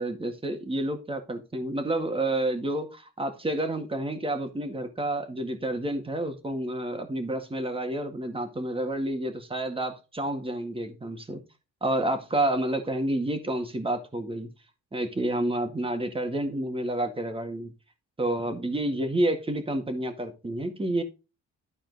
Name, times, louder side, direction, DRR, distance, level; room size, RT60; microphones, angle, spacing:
voice 1, 0.0-11.4 11.8-14.5 14.9-17.7 18.2-21.0, right 1 dB, 20° right, 6 dB, 1.8 m, -29 dB
12.0 x 4.3 x 4.0 m, 0.29 s
cardioid pair, 90°, 30 cm